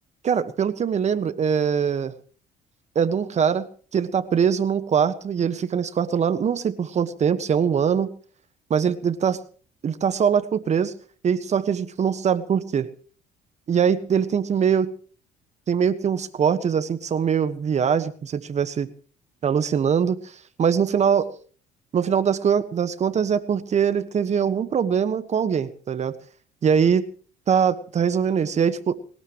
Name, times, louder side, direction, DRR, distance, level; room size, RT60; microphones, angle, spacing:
voice 1, 0.2-2.1 2.9-3.7 3.9-8.1 8.7-9.4 9.8-10.9 11.2-12.9 13.7-14.9 15.7-18.9 19.4-20.3 20.6-21.3 21.9-26.2 26.6-27.0 27.5-29.0, right 7 dB, 40° right, 12 dB, 1.4 m, -22 dB
21.5 x 19.5 x 3.1 m, 0.42 s
cardioid pair, 110°, 17 cm